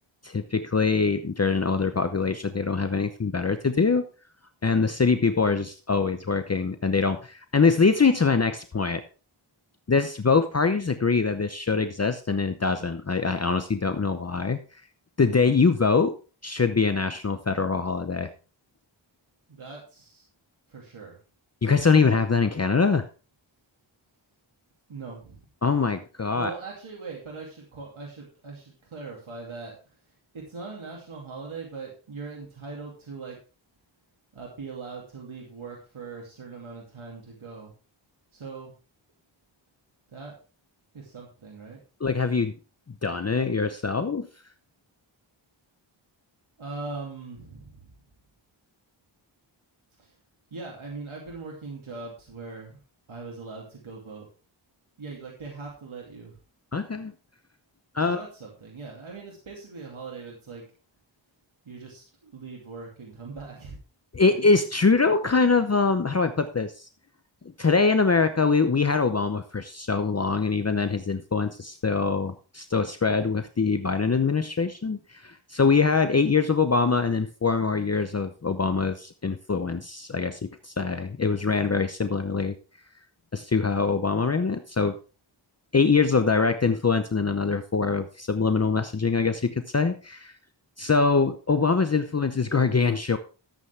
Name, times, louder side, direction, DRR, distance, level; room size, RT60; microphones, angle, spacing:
voice 1, 0.2-4.0 4.6-9.0 9.9-14.6 15.2-16.1 16.4-18.3 21.6-23.0 25.6-26.5 42.0-42.5 43.0-44.3 56.7-57.1 57.9-58.3 64.1-66.9 67.6-82.5 83.3-85.0 85.7-90.3 90.8-93.2, left 4 dB, 35° left, 9 dB, 0.8 m, -23 dB
voice 2, 19.5-20.3 20.7-21.2 24.9-25.4 26.3-29.8 30.3-33.4 34.3-37.7 38.3-38.7 40.1-40.3 40.9-41.8 46.6-47.9 50.0-50.1 50.5-52.8 53.1-54.3 55.0-56.4 58.0-60.6 61.7-63.8 64.2-64.4, right 4 dB, 90° right, -2 dB, 2.8 m, -40 dB
13.0 x 8.3 x 3.4 m, 0.35 s
wide cardioid pair, 85°, 47 cm